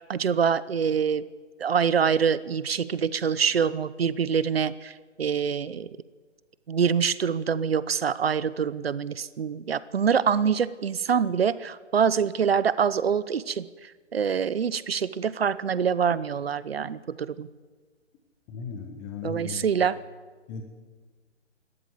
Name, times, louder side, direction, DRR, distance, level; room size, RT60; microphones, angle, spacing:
voice 1, 0.1-1.2 1.6-4.9 5.2-5.9 6.7-13.7 14.1-17.5 19.2-20.0, right 7 dB, 55° right, 17 dB, 1.0 m, -25 dB
voice 2, 18.5-19.7 20.5-20.6, left 4 dB, 10° left, 4 dB, 0.9 m, -36 dB
28.5 x 13.0 x 8.0 m, 1.4 s
figure-of-eight pair, 150°, 36 cm